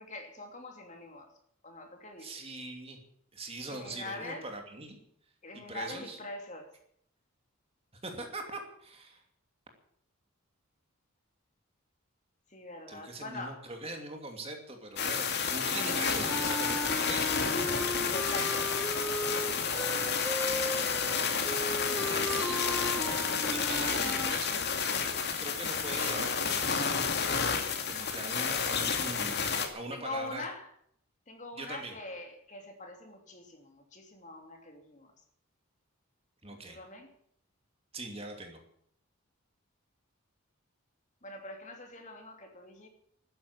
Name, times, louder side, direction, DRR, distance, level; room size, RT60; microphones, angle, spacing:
voice 1, 0.0-1.4 1.6-2.4 3.6-4.5 5.4-6.8 12.5-13.7 17.9-18.8 19.1-20.0 29.9-30.7 31.3-35.1 36.7-37.1 41.2-42.9, left 2 dB, 35° left, 2.8 m, -43 dB
voice 2, 2.2-3.0 3.3-5.0 5.5-6.2 8.0-9.2 12.9-17.4 22.1-24.7 25.4-27.0 27.9-30.4 31.6-32.0 36.4-36.8 37.9-38.6, right 2 dB, 30° right, 2.7 m, -42 dB
sound 1, 15.0-29.7, left 6 dB, 50° left, 2.4 m, -30 dB
sound 2, 15.7-24.4, equal, 5° left, 0.9 m, -37 dB
13.5 x 10.0 x 9.7 m
head